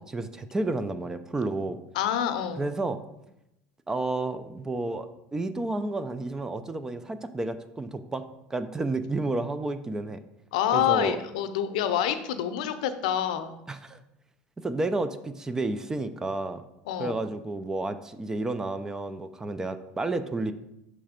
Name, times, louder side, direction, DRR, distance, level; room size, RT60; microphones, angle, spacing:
voice 1, 0.0-1.8 2.6-3.0 3.9-8.2 8.5-10.2 10.7-11.2 13.7-14.0 14.6-16.6 17.0-20.5, right 2 dB, 15° right, 11 dB, 0.4 m, -31 dB
voice 2, 1.9-2.6 10.5-13.6 16.9-17.2, left 10 dB, 85° left, 10 dB, 0.6 m, -27 dB
6.8 x 3.2 x 5.0 m, 0.86 s
supercardioid pair, 120°, 4 cm